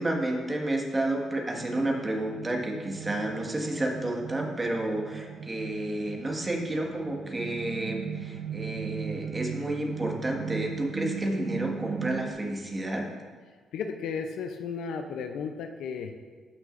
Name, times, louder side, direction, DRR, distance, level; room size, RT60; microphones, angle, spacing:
voice 1, 0.0-13.1, right 1 dB, 20° right, 0 dB, 1.6 m, -31 dB
sound 1, 1.2-12.3, right 7 dB, 65° right, 0.7 m, -38 dB
voice 2, 13.7-16.1, left 6 dB, 80° left, 6 dB, 0.6 m, -34 dB
15.5 x 6.2 x 2.6 m, 1.5 s
cardioid pair, 90°, 0 cm